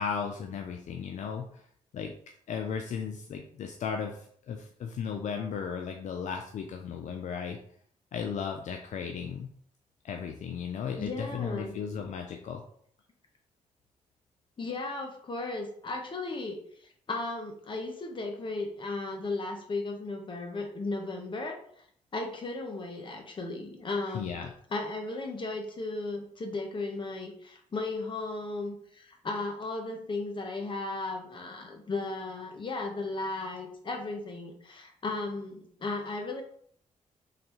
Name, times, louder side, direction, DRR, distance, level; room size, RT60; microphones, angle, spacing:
voice 1, 0.0-1.6 1.9-2.1 2.5-7.6 8.1-9.5 10.0-12.6 24.1-24.5, left 6 dB, 70° left, 4 dB, 0.4 m, -35 dB
voice 2, 11.0-11.7 14.6-21.6 22.1-24.4 24.7-36.4, left 3 dB, 40° left, 2 dB, 1.0 m, -35 dB
4.0 x 3.2 x 3.0 m, 0.62 s
cardioid pair, 75°, 13 cm